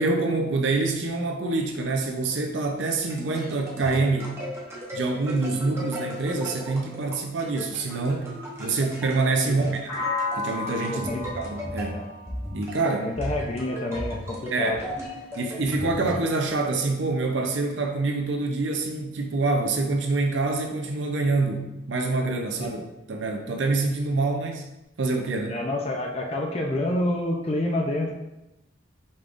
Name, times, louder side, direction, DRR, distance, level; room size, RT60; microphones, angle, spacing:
voice 1, 0.0-4.4 4.9-8.3 8.6-9.9 10.3-11.1 11.3-12.1 12.5-13.1 14.5-14.8 15.4-22.8 23.1-24.7 25.0-25.6, right 3 dB, 70° right, 3 dB, 0.6 m, -26 dB
sound 1, 2.9-16.7, equal, 15° right, 0.8 m, -36 dB
sound 2, 9.9-13.8, left 3 dB, 65° left, 1.4 m, -34 dB
voice 2, 10.9-11.2 11.9-12.0 13.0-14.9 22.6-22.7 25.5-28.1, left 1 dB, 30° left, 0 dB, 0.4 m, -28 dB
5.3 x 3.5 x 2.5 m, 0.94 s
head